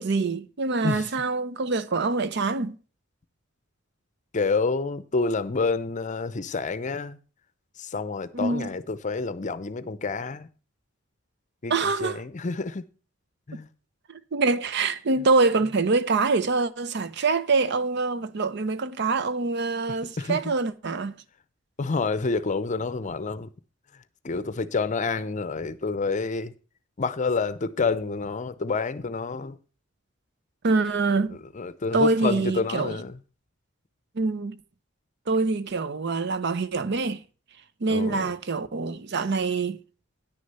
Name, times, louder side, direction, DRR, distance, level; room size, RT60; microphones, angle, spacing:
voice 1, 0.0-2.8 8.3-8.7 11.7-12.2 14.1-21.2 30.6-31.4 31.9-33.0 34.2-34.6 35.3-37.2 37.8-39.8, right 3 dB, 60° right, 0.7 m, -25 dB
voice 2, 4.3-7.2 7.8-10.5 11.6-12.8 13.5-13.7 20.2-20.4 21.8-23.5 24.2-26.5 27.0-29.6 31.5-33.2 37.9-38.3, left 4 dB, 40° left, 0.6 m, -28 dB
10.0 x 6.5 x 5.5 m
head